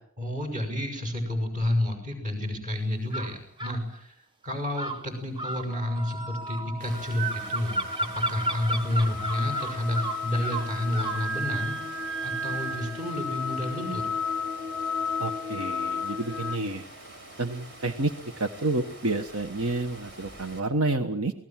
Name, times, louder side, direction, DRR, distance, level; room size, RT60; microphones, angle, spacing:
voice 1, 0.2-4.1 4.4-7.8 8.1-14.1, left 1 dB, 40° right, 5 dB, 6.6 m, -30 dB
sound 1, 3.1-3.8 4.7-11.3, right 2 dB, 25° right, 1.0 m, -33 dB
sound 2, 5.7-16.6, left 3 dB, ahead, 1.2 m, -34 dB
Water, 6.8-20.6, right 1 dB, 55° right, 6.7 m, -46 dB
voice 2, 15.2-16.8 17.4-18.1 18.4-21.3, right 2 dB, 75° right, 8 dB, 1.3 m, -29 dB
28.0 x 19.5 x 7.5 m, 0.66 s
head